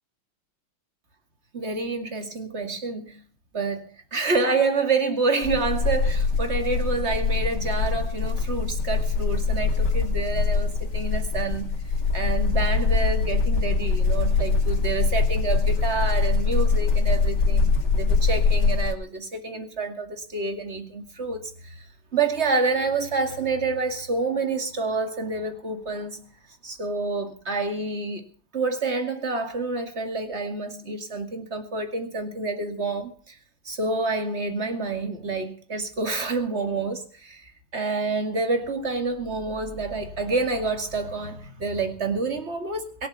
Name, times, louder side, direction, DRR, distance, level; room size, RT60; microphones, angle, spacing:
voice 1, 1.5-3.2 3.5-11.7 12.1-21.9 22.1-26.2 26.6-28.3 28.5-33.4 33.6-43.1, right 3 dB, 30° right, 2.4 m, -28 dB
sound 1, 5.4-18.9, left 4 dB, 55° left, 2.9 m, -23 dB
22.5 x 7.5 x 8.2 m
omnidirectional pair, 2.3 m